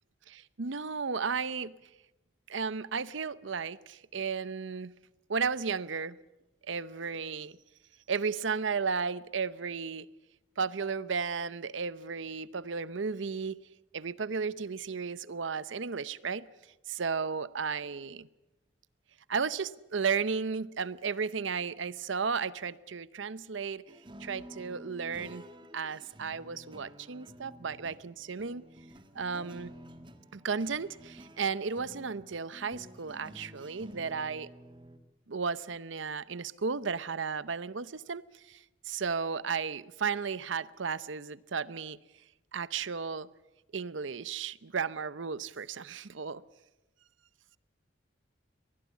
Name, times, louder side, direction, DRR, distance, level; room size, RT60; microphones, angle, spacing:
voice 1, 0.3-1.7 2.5-4.9 5.3-6.2 6.7-7.6 8.1-10.1 10.6-13.6 13.9-16.4 16.9-18.3 19.3-23.8 24.2-25.4 25.7-28.6 29.1-29.7 30.3-34.5 35.3-38.2 38.5-38.6 38.8-42.0 42.5-43.3 43.7-46.4, right 5 dB, 80° right, 0.7 m, -34 dB
sound 1, 23.9-35.0, equal, 25° right, 1.5 m, -51 dB
23.5 x 20.0 x 8.3 m
head